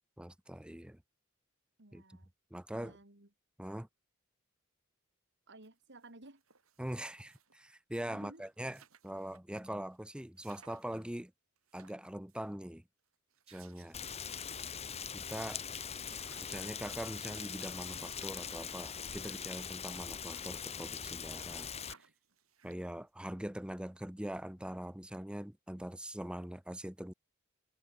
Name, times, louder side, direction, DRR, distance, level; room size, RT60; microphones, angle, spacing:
voice 1, 0.2-1.0 1.9-2.0 2.5-3.0 3.6-3.9 6.8-8.8 9.0-11.3 11.7-12.8 13.5-14.0 15.1-15.6 16.4-21.7 22.6-27.1, right 1 dB, 5° right, 0.7 m, -42 dB
voice 2, 1.8-2.3 2.8-3.3 5.5-6.4 8.1-8.5, right 2 dB, 60° right, 3.5 m, -56 dB
sound 1, 5.6-5.7 6.0-7.7 8.1-8.2 8.4-9.6 9.9-10.0 10.4-11.2 11.6-12.5 13.1-14.8 15.2-15.3 15.5-21.3 21.6-23.1, right 7 dB, 85° right, 4.7 m, -63 dB
Rain, 13.9-21.9, left 7 dB, 30° left, 1.3 m, -42 dB
head